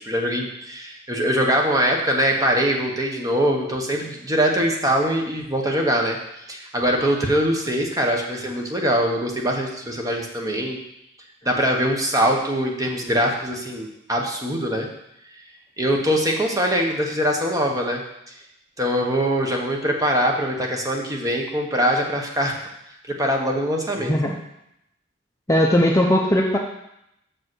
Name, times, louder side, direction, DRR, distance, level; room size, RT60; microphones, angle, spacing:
voice 1, 0.0-10.8 11.4-14.9 15.8-18.0 18.8-22.5 23.1-24.1, equal, 20° right, 1 dB, 1.0 m, -22 dB
voice 2, 24.0-24.4 25.5-26.6, equal, 15° left, 0 dB, 0.5 m, -18 dB
6.4 x 5.1 x 6.1 m, 0.82 s
head